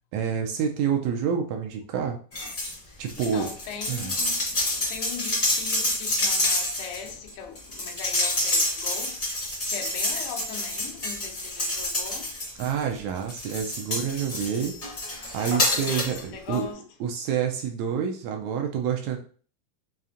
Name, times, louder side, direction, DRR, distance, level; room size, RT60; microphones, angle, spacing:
voice 1, 0.1-2.2 3.0-3.5 3.9-4.1 12.6-14.8 15.3-16.7 17.0-19.2, right 7 dB, 80° right, 1.7 m, -28 dB
sound 1, 2.3-2.8 3.1-12.8 13.3-16.2 16.5-16.6, left 1 dB, 65° left, 0.5 m, -28 dB
voice 2, 2.9-4.5 4.9-12.4 15.8-16.8, left 7 dB, 90° left, 2.1 m, -40 dB
5.5 x 2.4 x 2.5 m
omnidirectional pair, 3.4 m